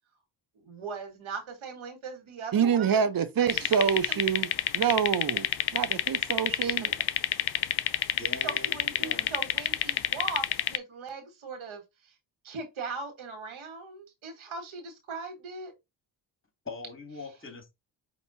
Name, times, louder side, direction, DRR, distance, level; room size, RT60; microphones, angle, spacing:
voice 1, 0.6-3.0 3.4-4.2 6.6-7.0 8.4-12.1 12.4-15.7, right 4 dB, 75° right, 1.7 m, -39 dB
voice 2, 2.5-4.5 4.7-5.5 5.7-6.9, right 7 dB, 45° right, 0.8 m, -26 dB
sound 1, 3.5-10.8, left 12 dB, 55° left, 0.6 m, -28 dB
voice 3, 8.2-9.3 16.6-17.7, left 2 dB, 25° left, 2.5 m, -42 dB
5.5 x 2.9 x 2.7 m
supercardioid pair, 50°, 48 cm